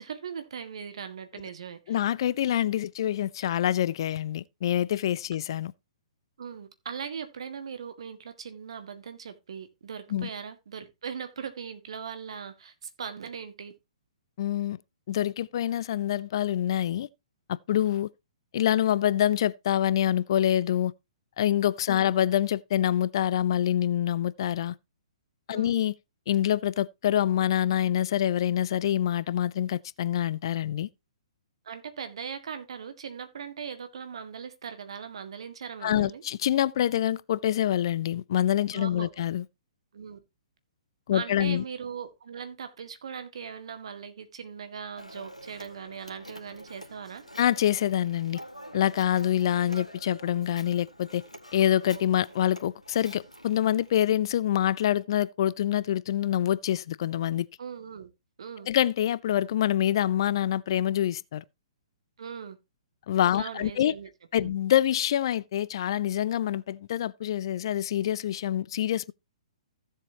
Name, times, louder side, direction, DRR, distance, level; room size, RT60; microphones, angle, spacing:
voice 1, 0.0-2.0 6.4-13.7 21.9-22.1 25.5-25.8 31.7-36.2 38.7-39.2 39.9-40.2 41.1-47.2 57.6-58.1 58.4-58.7 62.2-62.6 63.4-64.1 64.4-64.5, right 7 dB, 55° right, 1.9 m, -39 dB
voice 2, 1.9-5.7 10.1-10.3 14.4-14.8 15.1-17.1 17.5-18.1 18.5-20.9 21.4-24.7 25.5-25.9 26.3-30.9 35.8-39.4 41.1-41.6 47.4-48.4 48.7-51.2 51.5-57.5 58.7-61.4 63.1-63.9 64.3-69.1, left 11 dB, 45° left, 0.4 m, -26 dB
Telephone, 45.0-54.0, equal, 90° left, 1.7 m, -47 dB
15.5 x 7.4 x 2.9 m
figure-of-eight pair, 120°, 4 cm